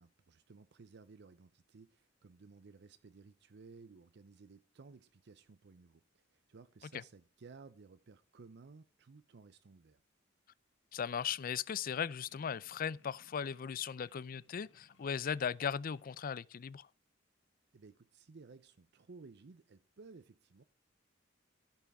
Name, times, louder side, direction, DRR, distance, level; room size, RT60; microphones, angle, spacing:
voice 1, 0.0-10.0 17.7-20.6, right 4 dB, 60° right, 0.6 m, -57 dB
voice 2, 10.9-16.9, left 7 dB, 45° left, 0.4 m, -38 dB
sound 1, 11.2-16.2, left 3 dB, 70° left, 1.3 m, -68 dB
15.0 x 5.8 x 4.9 m
head